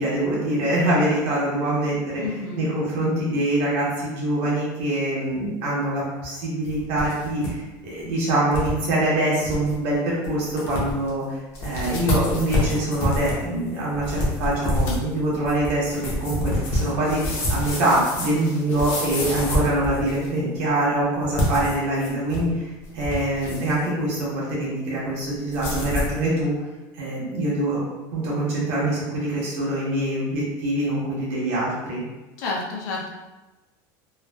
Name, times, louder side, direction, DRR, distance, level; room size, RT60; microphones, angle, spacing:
voice 1, 0.0-2.2 2.6-17.2 17.5-26.5 26.9-27.8 28.1-32.0, right 1 dB, 55° right, -5 dB, 1.2 m, -24 dB
voice 2, 2.2-2.7 32.4-33.1, left 3 dB, 75° left, -2 dB, 0.7 m, -30 dB
sound 1, 6.7-7.5 7.8-7.9 8.5-8.7 9.1-9.2 9.4-9.7 10.2-10.3 10.6-11.1 11.5-20.4 21.2-22.5 22.8-23.8 25.5-26.2, left 1 dB, 30° left, 0.7 m, -27 dB
3.2 x 2.4 x 2.3 m, 1.1 s
cardioid pair, 175°, 10 cm